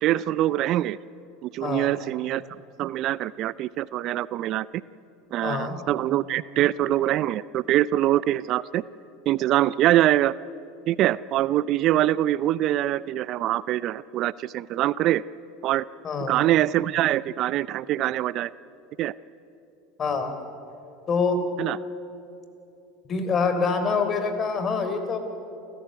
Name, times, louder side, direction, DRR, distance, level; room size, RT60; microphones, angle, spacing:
voice 1, 0.0-1.0 1.4-4.8 5.3-8.8 9.3-10.3 10.9-15.2 15.6-15.8 16.3-18.5 19.0-19.1 21.6-21.8, right 14 dB, 50° right, 20 dB, 0.4 m, -24 dB
voice 2, 5.4-5.8 16.0-16.4 20.0-20.3 21.1-21.4 23.1-25.2, left 4 dB, 35° left, 8 dB, 3.6 m, -25 dB
29.0 x 14.0 x 9.4 m, 2.8 s
hypercardioid pair, 80°, 0 cm